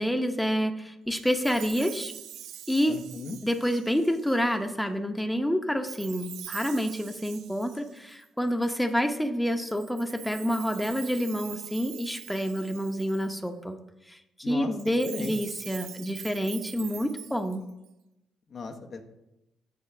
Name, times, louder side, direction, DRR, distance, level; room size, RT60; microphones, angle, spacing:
voice 1, 0.0-2.1 2.7-3.0 3.4-13.8 14.1-17.6, equal, 5° left, 6 dB, 0.9 m, -28 dB
Chime, 1.2-4.5 5.9-8.7 9.7-13.5 14.7-17.9, right 11 dB, 65° right, 0.3 m, -44 dB
voice 2, 2.9-3.4 14.4-14.7 15.1-15.3 18.5-19.0, left 3 dB, 50° left, 4 dB, 0.8 m, -36 dB
8.5 x 4.1 x 5.9 m, 0.92 s
figure-of-eight pair, 40°, 0 cm